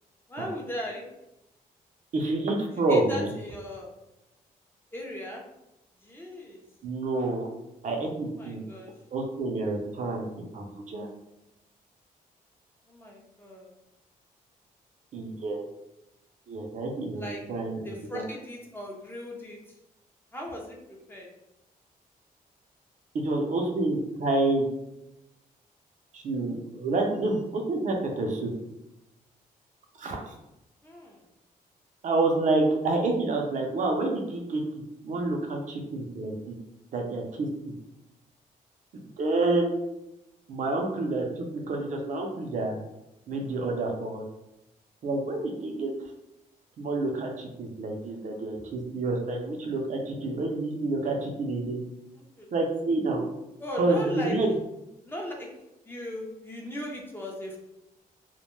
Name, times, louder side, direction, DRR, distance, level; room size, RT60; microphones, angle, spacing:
voice 1, 0.3-1.1 2.9-3.9 4.9-5.4 6.0-6.6 8.4-8.9 12.9-13.7 17.2-17.4 17.8-19.6 20.3-21.3 30.8-31.2 52.1-52.5 53.6-54.4 55.0-55.5 55.9-57.6, left 1 dB, 15° left, -1 dB, 0.5 m, -38 dB
voice 2, 2.1-3.3 6.8-7.5 7.8-8.6 9.1-11.1 15.1-15.6 16.5-18.2 23.1-24.7 26.1-28.5 30.0-30.3 32.0-34.6 35.0-36.5 36.9-37.7 38.9-39.7 40.5-42.8 43.3-44.2 45.0-45.9 46.8-51.8 52.5-53.2 53.7-54.5, right 2 dB, 55° right, 1 dB, 0.5 m, -28 dB
2.1 x 2.1 x 3.0 m, 0.90 s
cardioid pair, 115°, 15 cm